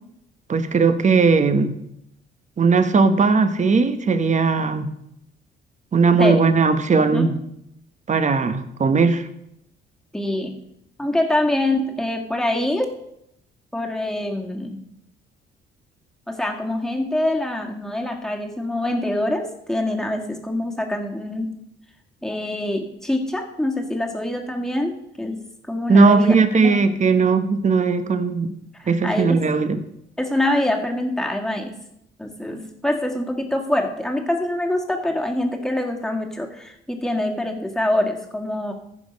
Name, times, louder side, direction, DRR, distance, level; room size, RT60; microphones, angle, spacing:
voice 1, 0.5-1.8 2.6-4.9 5.9-7.4 8.1-9.3 25.9-28.5 28.9-29.8, right 4 dB, 35° right, 10 dB, 1.1 m, -18 dB
voice 2, 6.9-7.3 10.1-10.5 11.0-12.9 13.7-14.8 16.3-21.6 22.2-25.4 25.7-26.8 28.8-29.4 30.2-31.7 32.2-38.7, left 1 dB, 5° left, 2 dB, 1.8 m, -25 dB
14.5 x 5.4 x 5.2 m, 0.77 s
cardioid pair, 90°, 20 cm